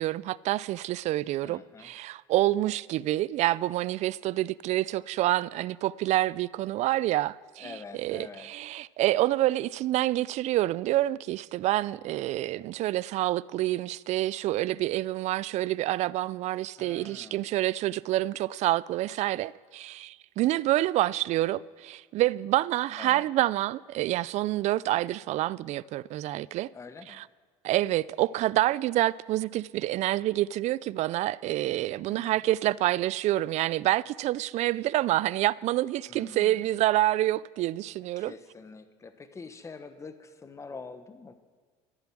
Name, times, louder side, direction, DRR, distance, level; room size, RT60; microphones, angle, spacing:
voice 1, 0.0-7.7 8.0-26.7 27.1-27.2 27.6-38.3, right 15 dB, 50° right, 0.4 m, -27 dB
voice 2, 1.4-1.9 7.6-8.5 16.8-17.5 23.0-23.3 26.7-27.3 32.1-32.4 36.1-36.7 38.2-41.3, left 4 dB, 20° left, 1.1 m, -45 dB
14.0 x 10.5 x 6.2 m
supercardioid pair, 95°, 15 cm